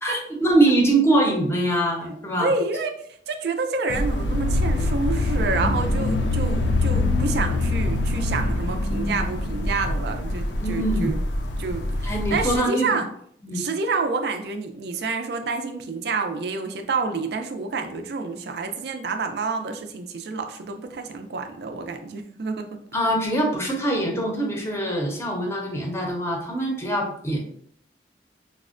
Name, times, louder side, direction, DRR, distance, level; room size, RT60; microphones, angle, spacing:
voice 1, 0.0-2.5 10.6-11.2 12.0-13.0 13.4-13.6 22.9-27.5, right 1 dB, 15° left, 0 dB, 0.6 m, -23 dB
voice 2, 2.1-2.9 3.3-11.2 11.6-13.0 13.5-22.7, right 4 dB, 65° right, 5 dB, 0.4 m, -28 dB
sound 1, 3.9-12.6, left 2 dB, 85° left, 0.4 m, -24 dB
4.1 x 2.1 x 2.4 m, 0.65 s
head